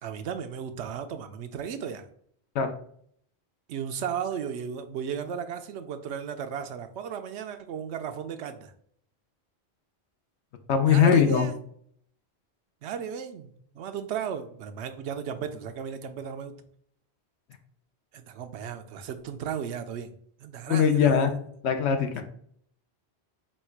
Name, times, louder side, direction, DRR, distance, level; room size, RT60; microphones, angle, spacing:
voice 1, 0.0-2.1 3.7-8.7 10.9-11.6 12.8-16.6 18.1-20.1 20.4-21.2 22.1-22.2, right 7 dB, 80° right, 8 dB, 0.8 m, -35 dB
voice 2, 10.7-11.5 20.7-21.3 21.6-22.2, left 7 dB, 80° left, 7 dB, 0.9 m, -21 dB
4.4 x 2.3 x 4.4 m, 0.64 s
omnidirectional pair, 1.1 m